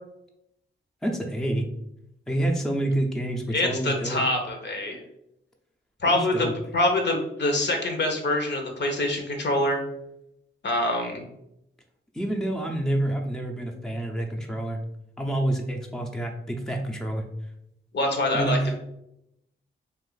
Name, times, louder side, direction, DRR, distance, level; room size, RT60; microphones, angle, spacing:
voice 1, 1.0-1.7 2.3-4.2 6.1-6.5 12.1-14.8 15.2-17.2 18.3-18.7, right 1 dB, ahead, 2 dB, 0.5 m, -28 dB
voice 2, 3.5-5.0 6.0-9.8 10.6-11.2 17.9-18.8, left 1 dB, 55° left, 3 dB, 0.8 m, -25 dB
2.5 x 2.5 x 3.8 m, 0.81 s
cardioid pair, 50°, 21 cm